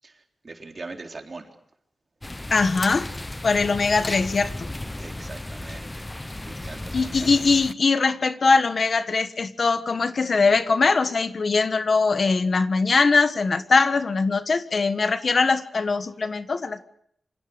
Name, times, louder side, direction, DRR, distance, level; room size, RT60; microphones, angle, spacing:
voice 1, 0.0-1.5 5.0-6.0 6.4-7.3, right 3 dB, 45° right, 2 dB, 3.8 m, -41 dB
sound 1, 2.2-7.7, left 1 dB, 20° left, 0.9 m, -35 dB
voice 2, 2.5-3.1 3.4-4.7 6.9-16.8, left 4 dB, 55° left, 10 dB, 1.4 m, -21 dB
28.0 x 26.0 x 5.2 m, 0.68 s
wide cardioid pair, 85°, 0 cm